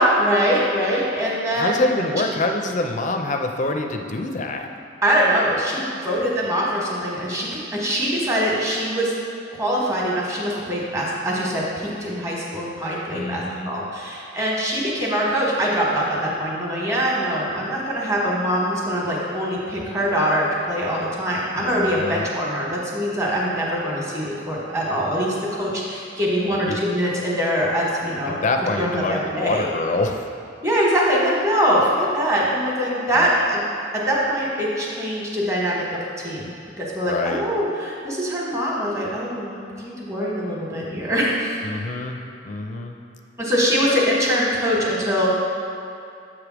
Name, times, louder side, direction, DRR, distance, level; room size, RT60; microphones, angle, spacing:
voice 1, 0.0-1.9 5.0-9.1 9.5-28.4 28.8-29.7 30.6-33.6 34.1-41.6 43.4-45.4, equal, 15° right, -4 dB, 1.2 m, -23 dB
voice 2, 1.5-4.7 13.1-13.7 21.5-22.2 26.4-26.8 28.2-30.3 33.1-33.2 37.0-37.4 41.6-43.0, left 2 dB, 45° left, 4 dB, 0.5 m, -26 dB
7.4 x 3.4 x 6.0 m, 2.7 s
head